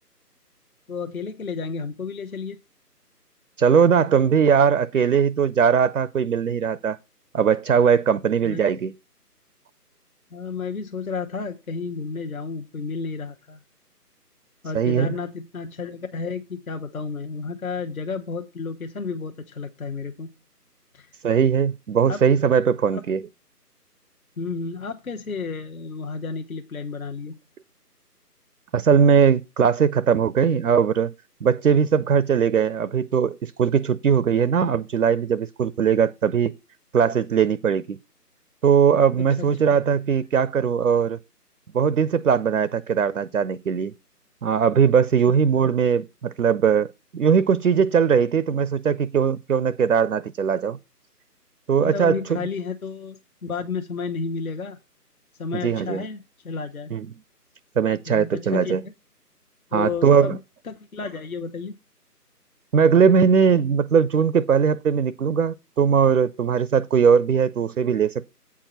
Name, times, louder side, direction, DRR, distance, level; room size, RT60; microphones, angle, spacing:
voice 1, 0.9-2.6 8.4-8.7 10.3-13.6 14.6-20.3 20.9-21.1 22.1-22.2 22.9-23.0 24.4-27.3 39.2-39.8 45.3-45.5 51.8-54.8 55.4-56.9 58.1-58.9 59.7-60.4 60.6-61.7, left 4 dB, 60° left, 0.9 m, -32 dB
voice 2, 3.6-7.0 7.3-8.9 14.7-15.1 21.2-23.2 28.7-31.1 31.4-36.5 36.9-38.0 38.6-41.2 41.7-43.9 44.4-50.8 51.7-52.4 55.5-56.0 56.9-57.1 57.8-58.8 59.7-60.4 62.7-68.2, right 7 dB, 60° right, 0.5 m, -20 dB
8.5 x 4.6 x 5.6 m
figure-of-eight pair, 155°, 48 cm